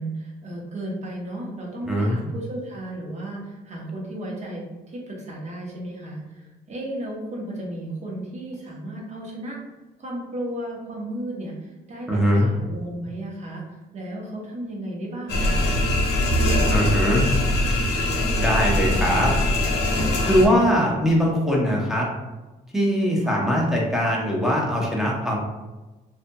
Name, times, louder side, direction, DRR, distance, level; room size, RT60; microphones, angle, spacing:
voice 1, 0.0-9.6 10.0-15.6 23.2-23.4, right 1 dB, 40° right, -2 dB, 0.8 m, -34 dB
voice 2, 1.9-2.2 12.1-12.5 16.7-17.3 18.4-19.3 20.2-22.1 22.7-25.4, equal, ahead, -3 dB, 0.7 m, -21 dB
sound 1, 15.3-20.5, left 1 dB, 90° left, 0.6 m, -22 dB
2.7 x 2.5 x 2.2 m, 1.1 s
cardioid pair, 95°, 17 cm